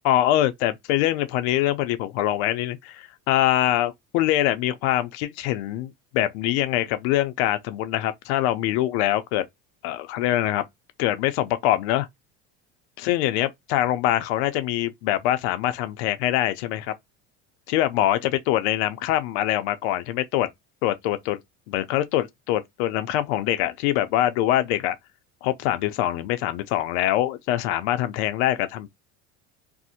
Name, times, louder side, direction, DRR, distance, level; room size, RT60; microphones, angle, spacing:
voice 1, 0.0-9.4 9.8-10.6 11.0-12.1 13.0-16.9 17.7-20.5 20.8-21.4 21.7-25.0 25.4-28.9, left 13 dB, 90° left, 0.5 m, -24 dB
2.6 x 2.0 x 2.7 m
cardioid pair, 140°, 32 cm